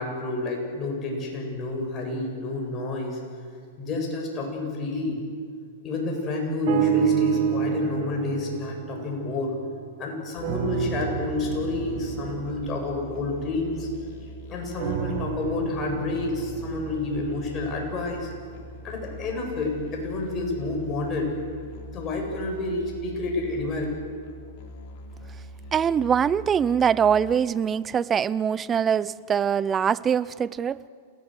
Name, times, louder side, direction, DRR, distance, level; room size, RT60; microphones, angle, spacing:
voice 1, 0.0-3.2 3.8-5.2 5.8-9.6 10.0-13.9 14.5-18.3 18.8-21.3 21.9-23.8, left 2 dB, 30° left, 1 dB, 7.9 m, -29 dB
sound 1, 6.7-10.0 10.4-14.2 14.8-19.0 19.7-19.8, right 10 dB, 55° right, 2.3 m, -30 dB
Musical instrument, 10.4-27.3, equal, 50° left, 4.1 m, -43 dB
voice 2, 25.7-30.9, right 7 dB, 20° right, 19 dB, 0.6 m, -23 dB
29.0 x 18.0 x 8.1 m, 2.1 s
hypercardioid pair, 125°, 0 cm